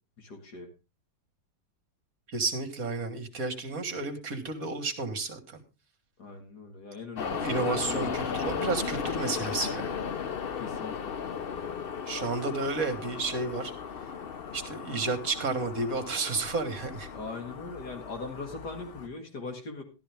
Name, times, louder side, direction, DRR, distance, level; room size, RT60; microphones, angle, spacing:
voice 1, 0.2-0.7 6.2-8.5 10.6-11.1 17.1-19.8, left 3 dB, 65° left, 3 dB, 2.6 m, -40 dB
voice 2, 2.3-5.6 7.3-10.0 12.1-13.7 14.5-17.1, right 3 dB, 55° right, 8 dB, 2.0 m, -31 dB
sound 1, 7.2-19.1, left 6 dB, 50° left, 0.7 m, -36 dB
13.0 x 12.5 x 3.5 m, 0.30 s
omnidirectional pair, 1.8 m